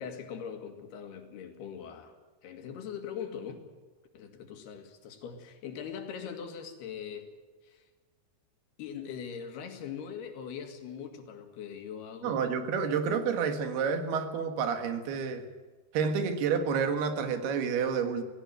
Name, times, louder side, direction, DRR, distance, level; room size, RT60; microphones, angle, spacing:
voice 1, 0.0-2.1 2.4-3.6 4.1-7.3 7.6-7.9 8.8-12.5, left 7 dB, 90° left, 6 dB, 4.1 m, -41 dB
voice 2, 12.2-15.5 15.9-18.2, right 6 dB, 85° right, 8 dB, 3.7 m, -29 dB
17.5 x 17.0 x 9.2 m, 1.4 s
omnidirectional pair, 4.4 m